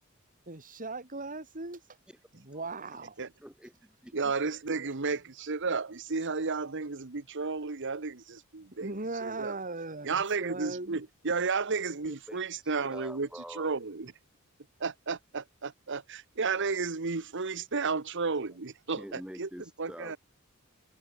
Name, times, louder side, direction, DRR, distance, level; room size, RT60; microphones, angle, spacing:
voice 1, 0.5-1.8 2.3-3.2 8.8-11.0, right 3 dB, 40° right, 3.7 m, -38 dB
voice 2, 3.4-4.3 12.0-13.7 18.9-20.2, equal, 5° right, 3.1 m, -46 dB
voice 3, 4.1-8.9 9.2-9.6 10.0-14.1 14.8-19.5 19.8-20.2, right 4 dB, 55° right, 1.1 m, -33 dB
head